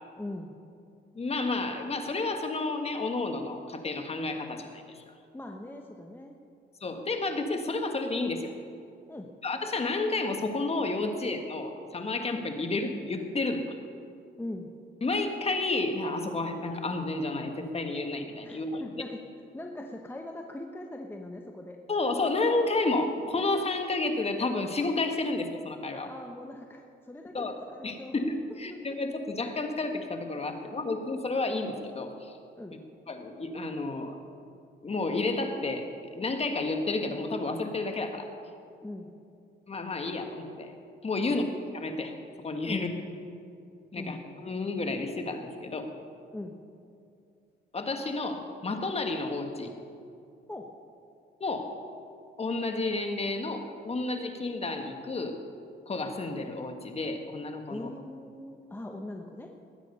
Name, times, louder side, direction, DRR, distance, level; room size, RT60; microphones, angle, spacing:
voice 1, 0.2-0.6 5.3-6.3 9.1-9.3 14.4-14.7 18.4-19.2 19.5-21.8 25.9-28.1 32.6-32.8 38.8-39.2 41.2-41.3 42.6-42.9 44.0-44.2 46.3-46.6 50.5-50.7 57.7-59.5, left 1 dB, 10° left, 2 dB, 1.0 m, -41 dB
voice 2, 1.1-5.0 6.8-8.5 9.4-13.7 15.0-18.8 21.9-26.1 27.3-27.5 27.8-32.4 33.1-34.2 34.8-38.3 39.7-40.7 41.0-41.4 41.7-42.1 42.4-42.9 43.9-45.9 47.7-49.7 51.4-51.7 52.4-55.4 55.9-57.9, left 3 dB, 30° left, 5 dB, 1.6 m, -31 dB
20.0 x 9.1 x 5.5 m, 2.5 s
cardioid pair, 90°, 20 cm